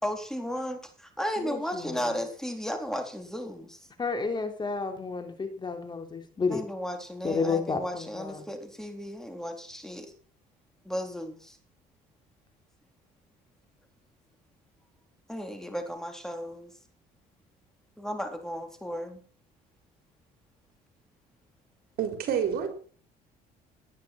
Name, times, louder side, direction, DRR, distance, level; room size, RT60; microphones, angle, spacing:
voice 1, 0.0-3.8 6.5-10.1 10.8-11.6 15.3-16.7 18.0-19.2, equal, 5° left, 5 dB, 4.1 m, -34 dB
voice 2, 1.4-2.2 4.0-6.6 7.2-8.4, left 4 dB, 25° left, 6 dB, 3.5 m, -31 dB
voice 3, 22.0-22.7, right 8 dB, 65° right, 6 dB, 4.5 m, -28 dB
18.5 x 10.5 x 6.1 m, 0.43 s
cardioid pair, 110°, 17 cm